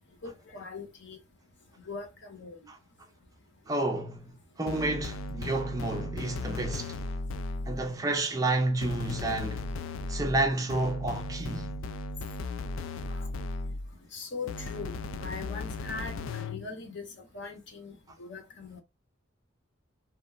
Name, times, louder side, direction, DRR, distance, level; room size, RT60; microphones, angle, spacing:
voice 1, 0.2-1.2 1.9-2.6 13.1-13.3 14.1-14.9 15.2-17.1 17.3-17.9 18.2-18.8, left 4 dB, 60° left, 0.9 m, -40 dB
voice 2, 3.7-4.3 4.6-7.0 7.7-9.8 10.1-11.7, right 2 dB, 15° right, 0.4 m, -30 dB
sound 1, 4.7-7.9 8.8-14.0 14.5-16.7, left 2 dB, 75° left, 0.3 m, -36 dB
2.8 x 2.1 x 2.3 m
head